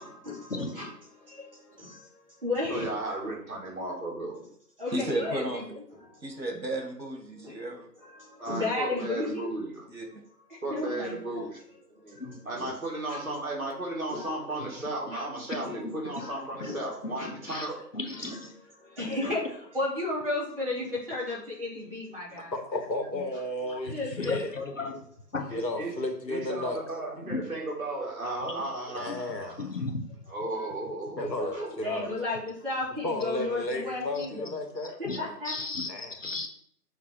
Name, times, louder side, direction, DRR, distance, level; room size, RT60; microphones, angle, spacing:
voice 1, 0.0-2.1 2.4-2.9 4.4-4.5 4.8-6.2 7.4-7.6 7.9-9.5 10.5-11.5 12.0-12.7 13.1-13.2 14.1-14.8 15.1-15.8 16.1-16.4 16.7-16.8 17.2-17.3 18.1-22.5 23.9-24.5 24.9-25.0 30.5-30.7 31.5-34.5 35.0-35.5, left 2 dB, 35° right, 2.7 m, -35 dB
voice 2, 2.7-4.4 8.4-9.8 10.6-11.6 11.9-17.9 25.5-26.0 26.3-29.8 30.3-31.9, right 2 dB, 55° right, 2.5 m, -35 dB
voice 3, 4.9-5.8 6.2-7.9 9.9-10.0, right 1 dB, 80° right, 1.9 m, -33 dB
voice 4, 17.9-18.5 19.0-19.2 24.2-25.0 25.3-25.5 27.3-27.4 29.1-29.2 29.6-30.0 35.1-35.2 35.5-35.9 36.2-36.5, left 3 dB, 50° left, 1.0 m, -34 dB
voice 5, 22.5-24.5 25.5-26.8 28.9-29.6 31.2-32.1 33.0-35.3 35.9-36.2, left 2 dB, 80° left, 1.8 m, -33 dB
6.0 x 3.6 x 4.7 m
figure-of-eight pair, 165°, 50 cm